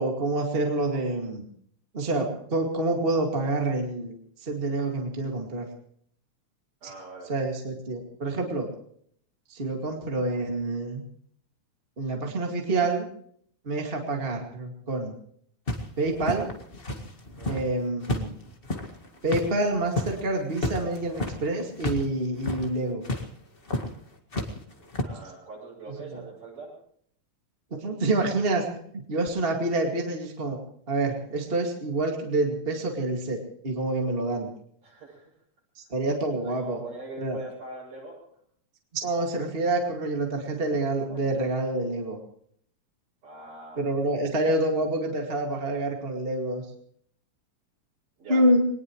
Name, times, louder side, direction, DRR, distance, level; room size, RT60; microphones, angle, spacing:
voice 1, 0.0-1.4 1.9-5.7 6.8-6.9 7.3-8.7 9.5-11.0 12.0-13.1 13.6-15.1 16.0-16.5 17.5-18.4 19.2-23.0 26.1-26.2 27.7-28.7 28.9-30.6 30.9-33.4 33.6-34.5 35.8-36.8 37.2-37.4 38.9-42.2 43.8-46.6 48.3-48.7, right 2 dB, 20° right, 1 dB, 2.1 m, -27 dB
voice 2, 6.8-7.3 17.3-17.6 25.0-26.7 34.8-35.3 36.3-38.2 41.1-41.2 43.2-44.5 48.2-48.4, right 2 dB, 65° right, -8 dB, 9.2 m, -42 dB
sound 1, 15.7-17.7 18.0-22.1 22.3-22.7 23.0-23.2 23.7-23.9 24.3-25.0, left 1 dB, 25° left, 1.6 m, -31 dB
22.5 x 19.5 x 3.2 m, 0.63 s
omnidirectional pair, 3.3 m